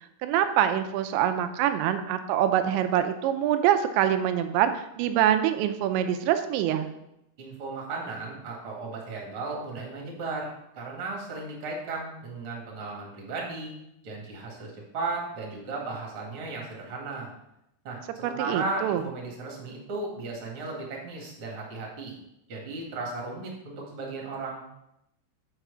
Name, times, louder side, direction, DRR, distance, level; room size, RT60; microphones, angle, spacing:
voice 1, 0.2-6.9 18.2-19.1, right 10 dB, 85° right, 9 dB, 2.9 m, -25 dB
voice 2, 7.4-13.7 14.0-17.3 17.8-22.2 22.5-24.7, right 3 dB, 40° right, -1 dB, 2.0 m, -35 dB
6.1 x 5.7 x 6.7 m, 0.84 s
omnidirectional pair, 5.1 m